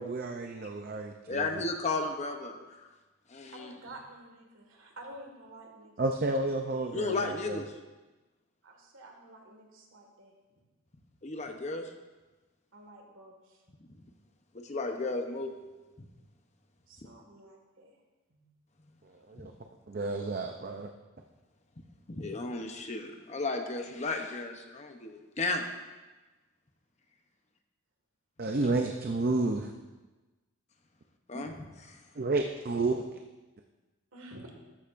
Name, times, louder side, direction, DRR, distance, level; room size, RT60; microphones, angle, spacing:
voice 1, 0.0-1.6 6.0-7.6 19.3-19.5 19.9-20.9 28.4-29.7 31.3-31.5 32.2-33.0, right 2 dB, 45° right, 4 dB, 0.5 m, -31 dB
voice 2, 1.3-2.9 3.3-3.7 6.9-7.8 11.2-11.9 14.5-15.5 16.0-16.1 19.4-19.5 22.1-25.7 28.6-28.7 31.3-32.0, left 3 dB, 30° left, 5 dB, 0.7 m, -34 dB
voice 3, 3.5-5.9 8.6-10.3 12.7-13.6 16.9-17.9 18.3-18.5 34.1-34.5, right 1 dB, 70° right, 2 dB, 1.8 m, -50 dB
13.5 x 10.0 x 2.6 m, 1.2 s
head